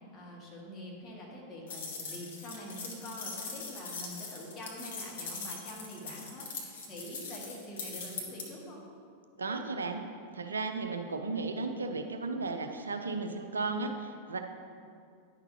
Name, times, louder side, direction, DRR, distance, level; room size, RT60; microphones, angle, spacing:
voice 1, 0.1-8.8, left 1 dB, 30° left, -4 dB, 1.8 m, -45 dB
sound 1, 1.7-8.5, left 4 dB, 60° left, 1.2 m, -41 dB
voice 2, 9.4-10.0 10.3-14.4, right 3 dB, 75° right, 6 dB, 0.4 m, -34 dB
10.0 x 5.9 x 2.8 m, 2.3 s
figure-of-eight pair, 90°, 0 cm